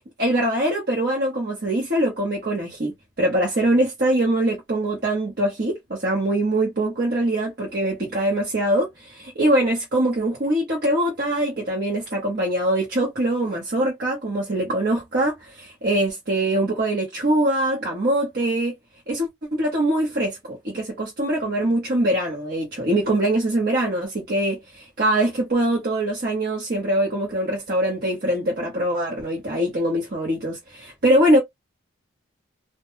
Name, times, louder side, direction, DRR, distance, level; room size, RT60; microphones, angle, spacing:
voice 1, 0.2-2.9 3.2-18.8 19.1-31.4, right 1 dB, 50° right, 0.9 m, -23 dB
2.2 x 2.1 x 2.9 m
head